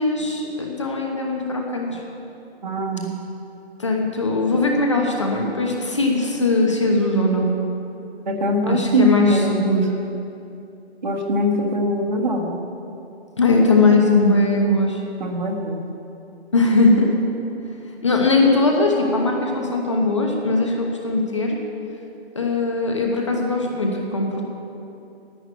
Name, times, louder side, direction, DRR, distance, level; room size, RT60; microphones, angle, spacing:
voice 1, 0.0-2.0 3.8-7.5 8.6-9.9 13.4-15.0 16.5-17.1 18.0-21.6 22.3-24.4, left 2 dB, 30° left, 0 dB, 1.1 m, -20 dB
voice 2, 2.6-3.1 8.3-9.8 11.0-12.6 15.2-15.8, equal, 45° right, 1 dB, 1.6 m, -22 dB
11.0 x 8.4 x 9.0 m, 2.8 s
hypercardioid pair, 180°, 33 cm